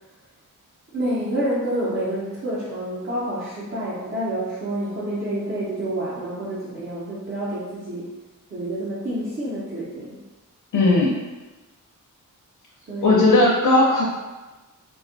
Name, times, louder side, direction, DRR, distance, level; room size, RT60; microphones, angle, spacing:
voice 1, 0.9-8.1 8.5-10.2 10.8-11.1 12.9-13.4, right 1 dB, 35° right, -10 dB, 0.6 m, -28 dB
voice 2, 10.7-11.1 13.0-14.0, left 2 dB, 80° left, -3 dB, 0.6 m, -16 dB
3.4 x 2.3 x 2.5 m, 1.2 s
wide cardioid pair, 170°, 32 cm